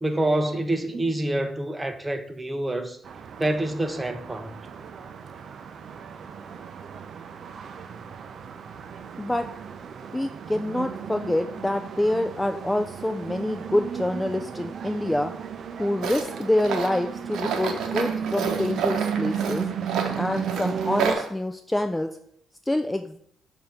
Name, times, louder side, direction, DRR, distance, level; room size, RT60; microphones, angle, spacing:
voice 1, 0.0-3.0 3.4-4.6, right 1 dB, 15° right, 0.7 m, -27 dB
sound 1, 3.0-21.1, right 7 dB, 55° right, 0.5 m, -35 dB
voice 2, 10.1-15.3 15.8-19.7 20.2-22.2 22.7-23.2, left 1 dB, 10° left, 0.3 m, -26 dB
Tools, 16.0-21.3, right 6 dB, 80° right, 0.8 m, -29 dB
6.6 x 2.7 x 5.6 m
cardioid pair, 90°, 0 cm